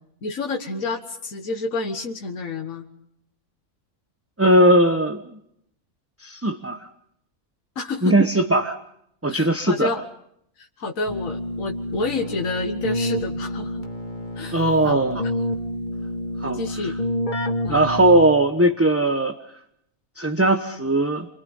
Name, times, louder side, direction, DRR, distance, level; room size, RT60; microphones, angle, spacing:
voice 1, 0.2-2.8 7.8-8.2 9.3-10.0 10.6-13.9 14.4-15.0 16.5-16.9 17.6-17.8, left 3 dB, 65° left, 1 dB, 2.0 m, -29 dB
voice 2, 4.4-5.2 6.2-6.9 8.0-8.8 9.2-9.9 14.5-15.2 16.4-16.9 17.7-19.3 20.2-21.3, right 1 dB, 10° right, 6 dB, 1.0 m, -19 dB
Keyboard (musical), 11.1-18.6, left 1 dB, 35° left, 2.1 m, -29 dB
28.5 x 24.0 x 5.5 m, 0.73 s
omnidirectional pair, 1.5 m